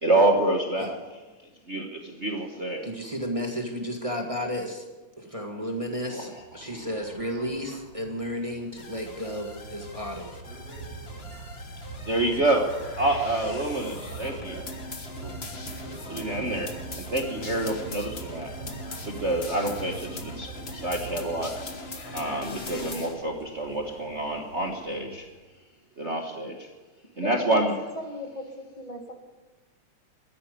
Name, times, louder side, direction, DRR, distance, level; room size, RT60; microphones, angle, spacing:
voice 1, 0.0-1.0 1.7-2.9 6.1-6.3 6.6-6.9 12.1-12.7 13.0-14.7 15.2-15.3 16.1-18.5 19.0-21.6 22.1-25.3 26.0-26.7 27.2-27.7, right 1 dB, 60° right, 2 dB, 0.7 m, -27 dB
voice 2, 2.8-4.9 5.2-10.3, equal, 15° right, 2 dB, 1.2 m, -33 dB
sound 1, 6.2-25.4, right 3 dB, 40° right, 3.1 m, -43 dB
sound 2, 8.8-23.1, left 3 dB, 60° left, 0.6 m, -41 dB
voice 3, 27.2-27.6 28.0-29.1, left 1 dB, 20° left, 3 dB, 1.1 m, -38 dB
13.5 x 10.5 x 9.3 m, 1.2 s
omnidirectional pair, 3.3 m